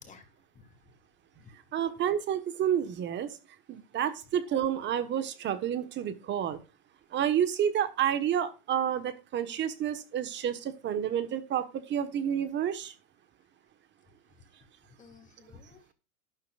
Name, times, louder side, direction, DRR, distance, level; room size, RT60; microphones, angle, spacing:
voice 1, 0.5-0.9 1.4-1.5 15.0-15.9, left 5 dB, 15° left, 6 dB, 2.4 m, -54 dB
voice 2, 1.7-3.4 3.7-6.6 7.1-12.9, right 9 dB, 25° right, 11 dB, 1.2 m, -30 dB
12.0 x 10.5 x 2.4 m, 0.31 s
supercardioid pair, 135°, 44 cm